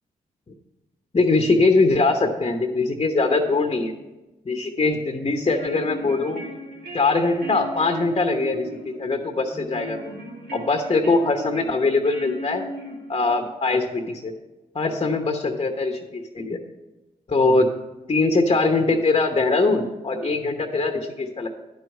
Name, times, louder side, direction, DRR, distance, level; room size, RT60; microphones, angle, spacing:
voice 1, 1.1-3.9 4.5-6.4 6.9-10.1 10.5-12.6 13.1-14.3 14.7-16.6 17.3-17.7 18.1-21.5, left 3 dB, 35° left, 4 dB, 1.0 m, -22 dB
sound 1, 5.3-13.3, right 1 dB, 75° right, 2.1 m, -37 dB
10.5 x 4.7 x 6.4 m, 1.1 s
hypercardioid pair, 40°, 17 cm